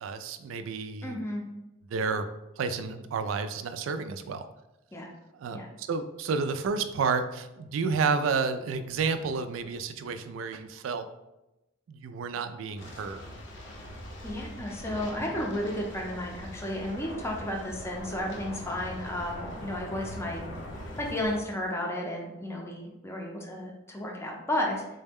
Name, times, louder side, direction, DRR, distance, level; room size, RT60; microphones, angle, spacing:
voice 1, 0.0-1.2 1.9-2.3 2.6-4.5 5.3-11.1 11.9-13.2, right 5 dB, 80° right, 9 dB, 0.3 m, -31 dB
voice 2, 1.0-1.4 4.9-5.1 5.5-5.7 14.2-20.4 21.0-25.0, left 1 dB, 15° left, 0 dB, 0.5 m, -33 dB
sound 1, 12.8-21.4, equal, 65° left, 0.7 m, -41 dB
3.9 x 2.1 x 3.4 m, 0.95 s
head